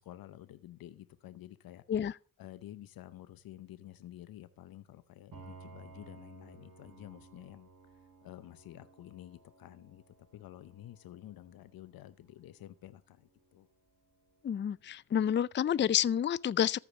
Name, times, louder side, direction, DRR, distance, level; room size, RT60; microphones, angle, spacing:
voice 1, 0.0-1.8 2.4-13.7, left 13 dB, 90° left, 0.7 m, -51 dB
Piano, 5.3-14.9, right 4 dB, 65° right, 3.4 m, -57 dB
voice 2, 14.4-16.8, left 9 dB, 35° left, 0.4 m, -29 dB
14.0 x 5.0 x 7.1 m
cardioid pair, 55°, 34 cm